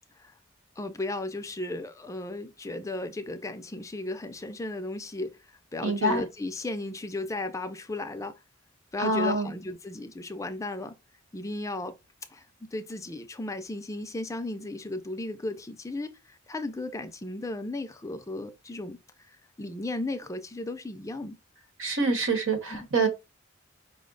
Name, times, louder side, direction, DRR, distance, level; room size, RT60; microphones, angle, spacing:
voice 1, 0.8-8.3 8.9-10.9 11.3-12.0 12.3-12.5 12.7-19.0 19.3-21.4 22.7-22.9, left 2 dB, 15° left, 0.4 m, -35 dB
voice 2, 5.8-6.2 9.0-9.5 21.8-23.1, right 2 dB, 90° right, 1.2 m, -26 dB
5.1 x 2.1 x 3.8 m
head